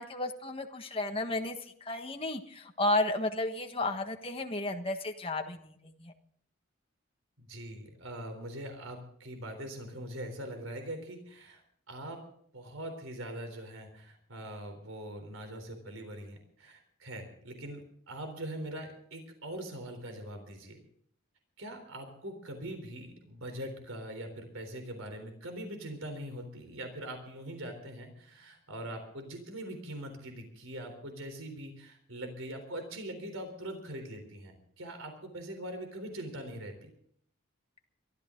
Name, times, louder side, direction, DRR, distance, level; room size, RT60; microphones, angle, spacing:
voice 1, 0.0-1.6 1.9-5.7 6.0-6.1, left 2 dB, 25° left, 4 dB, 1.5 m, -32 dB
voice 2, 7.4-11.6 11.9-12.2 12.5-20.8 21.6-36.9, right 1 dB, 75° right, 6 dB, 3.8 m, -42 dB
23.5 x 13.5 x 3.8 m, 0.64 s
head